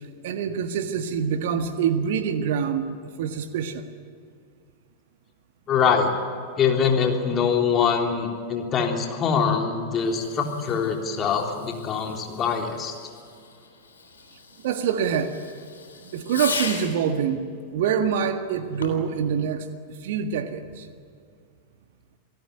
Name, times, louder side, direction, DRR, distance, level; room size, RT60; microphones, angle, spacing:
voice 1, 0.2-3.9 14.6-15.4 16.1-19.7 20.0-20.9, right 7 dB, 55° right, 8 dB, 1.7 m, -25 dB
voice 2, 5.7-6.1 6.6-12.9, left 6 dB, 30° left, 2 dB, 3.6 m, -23 dB
Fireworks, 10.0-17.1 18.7-19.2, left 5 dB, 70° left, 3.6 m, -38 dB
28.5 x 18.0 x 9.5 m, 2.2 s
figure-of-eight pair, 90°, 0 cm